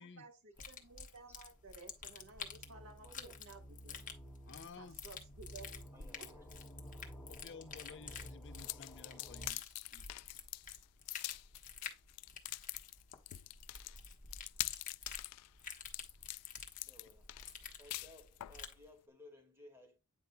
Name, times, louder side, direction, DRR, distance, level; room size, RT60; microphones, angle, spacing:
voice 1, 0.0-4.0 4.8-5.9, right 3 dB, 65° right, 1.8 m, -56 dB
sound 1, 0.6-18.8, left 6 dB, 35° left, 1.2 m, -50 dB
sound 2, 0.7-9.5, equal, 10° left, 1.3 m, -54 dB
voice 2, 3.0-3.4 4.5-4.6 5.9-6.4 16.8-17.4 17.8-20.0, left 1 dB, 10° right, 1.8 m, -59 dB
voice 3, 4.5-5.0 7.3-9.6 9.9-10.0, left 5 dB, 55° left, 0.6 m, -53 dB
sound 3, 8.6-18.6, left 18 dB, 85° left, 0.3 m, -44 dB
9.0 x 5.3 x 2.2 m
head